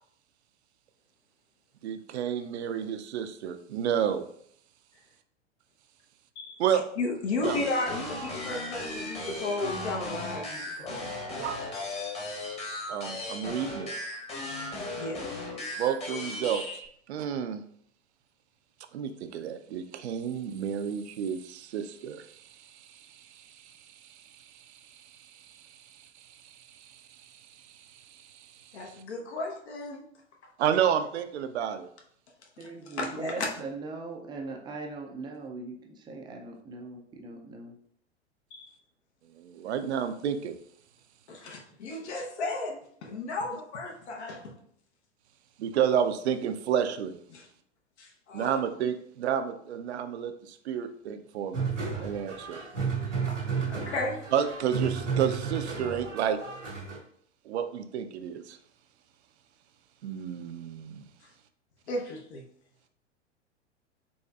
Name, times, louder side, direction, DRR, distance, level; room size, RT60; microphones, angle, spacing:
voice 1, 1.8-4.3 6.6-6.8 7.4-7.6 11.4-11.7 12.9-13.9 15.8-16.8 17.1-17.6 18.9-24.6 24.9-25.7 26.2-28.7 30.6-31.9 39.3-40.6 45.6-47.2 48.3-51.7 52.0-52.6 54.3-56.4 57.5-58.6 60.0-61.0, right 8 dB, 65° right, 9 dB, 0.5 m, -31 dB
voice 2, 7.0-11.1 15.0-15.3 28.7-30.0 32.6-32.7 32.9-33.5 38.5-38.7 41.3-44.5 47.3-47.5 48.0-48.6 53.6-54.2 61.9-62.4, left 2 dB, 65° left, 1 dB, 0.9 m, -34 dB
sound 1, 7.4-16.9, left 2 dB, 15° left, 1.0 m, -36 dB
voice 3, 32.6-37.8, right 3 dB, 15° right, 1 dB, 0.4 m, -40 dB
sound 2, 51.5-57.0, right 5 dB, 90° right, 1.3 m, -32 dB
4.1 x 3.1 x 2.3 m, 0.65 s
figure-of-eight pair, 95°, 36 cm